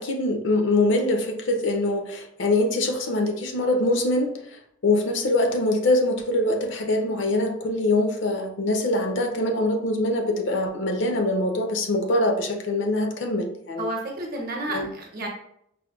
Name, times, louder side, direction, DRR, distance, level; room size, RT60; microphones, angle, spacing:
voice 1, 0.0-13.9 14.7-14.9, left 2 dB, 60° left, 5 dB, 0.5 m, -24 dB
voice 2, 13.8-15.3, right 1 dB, 45° right, 0 dB, 0.7 m, -31 dB
4.9 x 2.1 x 2.3 m, 0.72 s
head